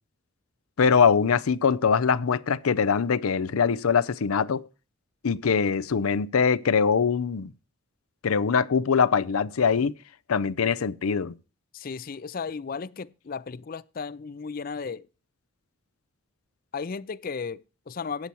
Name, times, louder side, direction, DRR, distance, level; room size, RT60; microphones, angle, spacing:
voice 1, 0.8-4.6 5.2-7.5 8.2-9.9 10.3-11.3, left 6 dB, 90° left, 0.6 m, -23 dB
voice 2, 11.7-15.1 16.7-18.3, left 5 dB, 40° left, 0.4 m, -35 dB
15.0 x 9.6 x 3.0 m
head